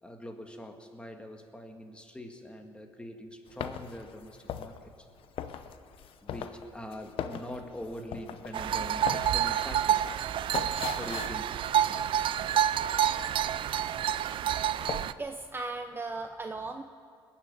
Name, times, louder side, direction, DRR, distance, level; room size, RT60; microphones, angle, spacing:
voice 1, 0.0-4.9 6.2-10.1 11.0-12.1, left 1 dB, 10° left, 3 dB, 2.0 m, -43 dB
sound 1, 3.5-12.7 13.0-14.0 14.3-15.2, left 8 dB, 65° left, 0.8 m, -40 dB
sound 2, 8.5-15.1, right 10 dB, 60° right, 0.4 m, -28 dB
voice 2, 14.9-16.8, right 3 dB, 20° right, 5 dB, 0.7 m, -37 dB
21.0 x 7.3 x 9.1 m, 2.3 s
cardioid pair, 85°, 10 cm